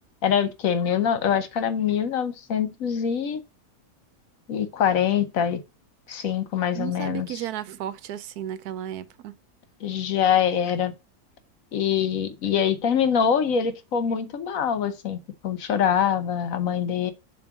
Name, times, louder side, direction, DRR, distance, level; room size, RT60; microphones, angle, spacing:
voice 1, 0.2-3.4 4.5-5.6 6.1-7.3 9.8-10.9 11.7-17.1, left 8 dB, 65° left, 1.2 m, -24 dB
voice 2, 6.7-9.4, right 11 dB, 85° right, 1.2 m, -34 dB
7.2 x 2.9 x 5.9 m
omnidirectional pair, 1.6 m